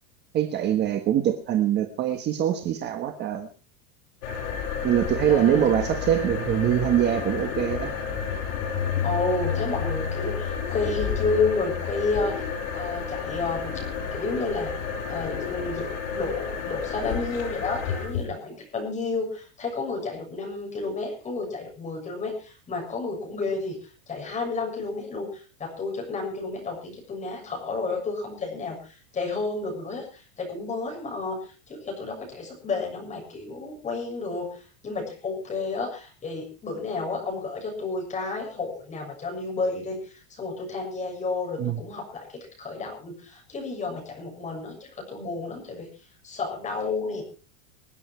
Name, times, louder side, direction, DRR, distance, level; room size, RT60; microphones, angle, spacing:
voice 1, 0.3-3.5 4.8-8.0 41.6-41.8, right 10 dB, 25° right, 1.4 m, -23 dB
sound 1, 4.2-18.3, left 6 dB, 75° left, 6.7 m, -30 dB
voice 2, 5.3-5.7 9.0-12.4 12.7-13.9 14.1-15.9 16.1-23.8 24.1-42.3 42.6-45.9 46.2-47.2, left 3 dB, 15° left, 6.7 m, -31 dB
26.5 x 9.1 x 4.5 m
supercardioid pair, 170°, 41 cm